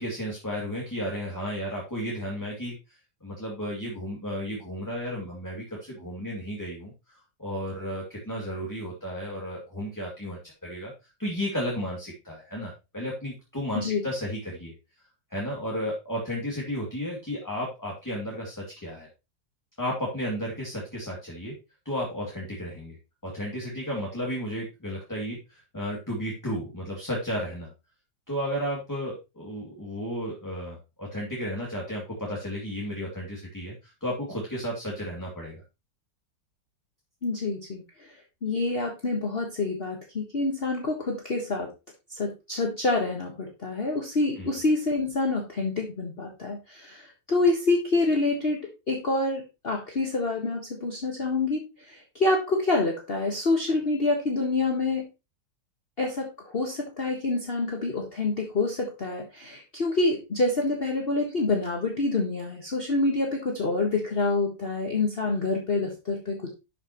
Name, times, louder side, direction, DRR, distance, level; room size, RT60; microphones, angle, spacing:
voice 1, 0.0-6.9 7.4-10.9 11.2-14.7 15.3-19.1 19.8-21.5 21.8-23.0 23.2-27.7 28.3-35.6 44.4-44.5, equal, 10° left, -3 dB, 2.3 m, -33 dB
voice 2, 37.2-38.1 38.4-41.7 42.1-55.1 56.0-66.5, left 3 dB, 35° left, 1 dB, 1.5 m, -27 dB
11.5 x 5.9 x 3.0 m, 0.26 s
omnidirectional pair, 1.9 m